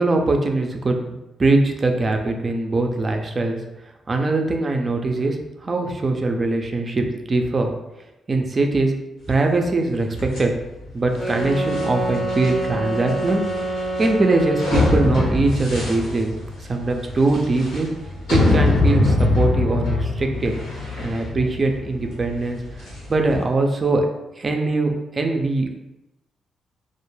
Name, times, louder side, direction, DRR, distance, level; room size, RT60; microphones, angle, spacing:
voice 1, 0.0-3.6 4.1-5.4 5.6-7.7 8.3-8.9 9.3-10.5 10.9-13.4 14.0-16.3 16.7-17.9 18.3-20.5 21.0-22.6 23.1-24.1 24.4-25.8, right 2 dB, 40° right, 3 dB, 0.4 m, -21 dB
sound 1, 10.2-23.4, left 2 dB, 85° left, 0.9 m, -24 dB
sound 2, 11.1-15.4, right 1 dB, 10° left, 0.6 m, -27 dB
2.1 x 2.0 x 3.1 m, 0.95 s
supercardioid pair, 55°, 0 cm